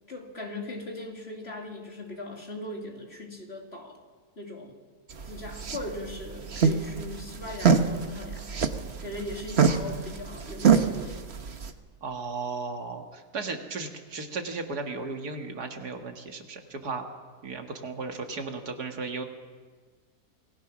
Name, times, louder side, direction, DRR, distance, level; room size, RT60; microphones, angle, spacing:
voice 1, 0.1-4.0 4.4-4.7 5.3-8.6 9.0-11.2, left 1 dB, 40° left, 1 dB, 3.0 m, -39 dB
sound 1, 5.1-11.7, right 6 dB, 45° right, 1.3 m, -26 dB
voice 2, 12.0-17.1 17.4-19.2, right 4 dB, 85° right, 4 dB, 2.4 m, -35 dB
27.0 x 20.0 x 6.1 m, 1.5 s
omnidirectional pair, 1.6 m